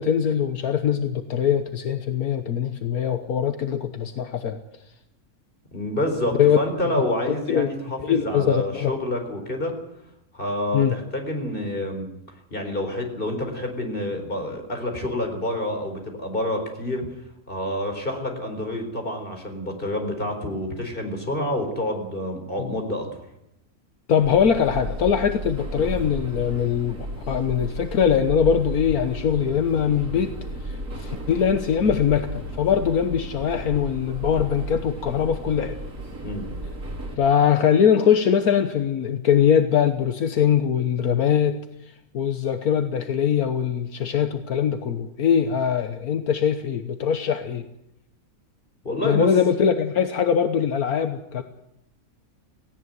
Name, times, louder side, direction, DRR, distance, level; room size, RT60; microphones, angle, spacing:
voice 1, 0.0-4.6 6.4-6.6 7.5-7.7 8.0-8.9 10.7-10.9 24.1-27.0 27.3-30.3 30.6-35.8 37.2-47.6 49.0-51.4, left 8 dB, 75° left, 8 dB, 1.6 m, -22 dB
voice 2, 5.7-9.7 10.3-12.1 12.5-17.1 17.5-23.2 36.2-36.5 48.8-49.3, left 1 dB, 35° left, 4 dB, 4.7 m, -28 dB
sound 1, 24.2-37.2, right 1 dB, 85° right, 5.3 m, -34 dB
18.0 x 17.0 x 9.5 m, 0.82 s
omnidirectional pair, 1.6 m